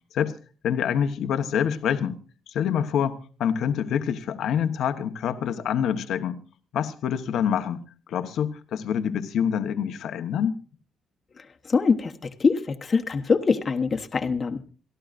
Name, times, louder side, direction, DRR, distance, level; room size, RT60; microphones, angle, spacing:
voice 1, 0.6-2.1 2.5-6.4 6.7-7.8 8.1-10.6, left 8 dB, 75° left, 9 dB, 1.1 m, -26 dB
voice 2, 11.7-12.1 12.4-14.6, left 5 dB, 40° left, 6 dB, 1.0 m, -23 dB
27.5 x 11.5 x 2.5 m, 0.37 s
cardioid pair, 90°, 0 cm